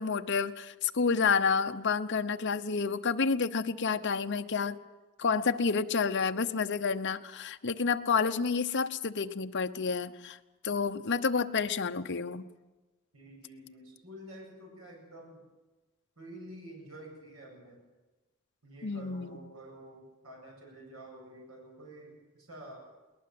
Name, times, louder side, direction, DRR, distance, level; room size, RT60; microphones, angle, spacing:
voice 1, 0.0-4.8 5.2-10.4 10.6-12.4 18.8-19.4, left 5 dB, 55° left, 7 dB, 0.9 m, -29 dB
voice 2, 13.1-15.4 16.2-17.8 18.6-22.9, right 1 dB, 75° right, 0 dB, 7.6 m, -49 dB
21.5 x 19.0 x 7.8 m, 1.2 s
head